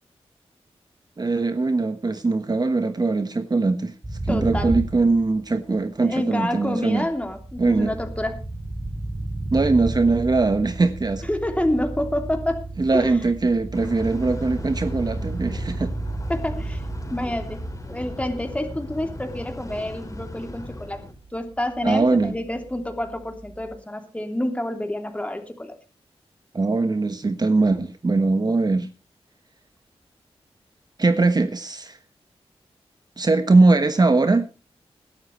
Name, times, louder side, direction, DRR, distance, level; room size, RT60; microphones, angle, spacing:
voice 1, 1.2-3.9 4.2-7.1 7.6-7.9 9.5-11.2 12.8-15.9 21.8-22.3 26.5-28.9 31.0-32.0 33.2-34.5, right 3 dB, 40° right, 9 dB, 1.3 m, -21 dB
sound 1, 4.0-5.8 6.8-23.7, right 2 dB, 20° right, 4.8 m, -34 dB
voice 2, 4.3-4.7 5.7-8.4 11.3-12.7 12.9-13.2 16.3-16.8 17.1-21.0 21.3-25.8, left 1 dB, 10° left, 4 dB, 2.9 m, -28 dB
sound 2, 13.7-21.1, left 2 dB, 30° left, 4.1 m, -37 dB
21.0 x 11.5 x 3.2 m, 0.30 s
cardioid pair, 70°, 11 cm